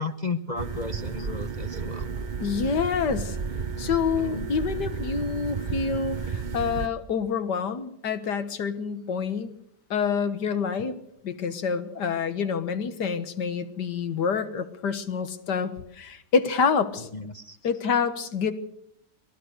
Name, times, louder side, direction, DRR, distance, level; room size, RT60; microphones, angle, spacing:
voice 1, 0.0-2.1 4.2-4.4 17.1-17.6, left 3 dB, 35° left, 9 dB, 0.7 m, -34 dB
sound 1, 0.6-6.9, right 5 dB, 35° right, 0.9 m, -32 dB
voice 2, 2.4-3.4 3.8-9.5 9.9-11.0 11.2-17.1 17.6-18.5, left 6 dB, 85° left, 11 dB, 2.0 m, -27 dB
24.0 x 17.0 x 6.6 m, 0.72 s
omnidirectional pair, 1.8 m